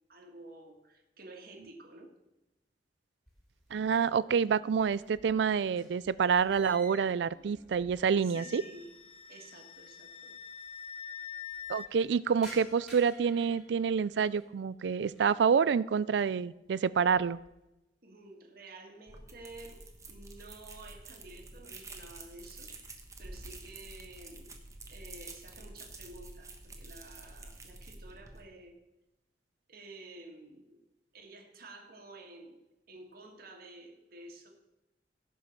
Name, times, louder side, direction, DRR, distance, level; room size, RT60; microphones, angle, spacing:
voice 1, 0.1-2.1 8.2-8.9 9.3-10.3 18.0-19.8 20.1-24.5 24.9-28.7 29.7-30.8 31.1-32.6 32.9-34.5, right 2 dB, 55° right, 2 dB, 1.9 m, -51 dB
sound 1, 3.3-4.1 4.4-8.5 8.8-8.9 9.8-9.9 10.0-10.1 10.4-10.9 11.3-14.5 14.9-15.4 15.9-16.3 16.7-17.6, right 1 dB, ahead, 3.5 m, -54 dB
voice 2, 3.7-8.6 11.7-17.4, right 6 dB, 75° right, 19 dB, 0.4 m, -28 dB
Wind instrument woodwind instrument, 8.3-11.9, left 8 dB, 35° left, 0.5 m, -45 dB
sound 2, 19.1-28.4, right 2 dB, 20° right, 1.2 m, -48 dB
16.5 x 5.6 x 5.9 m, 0.97 s
head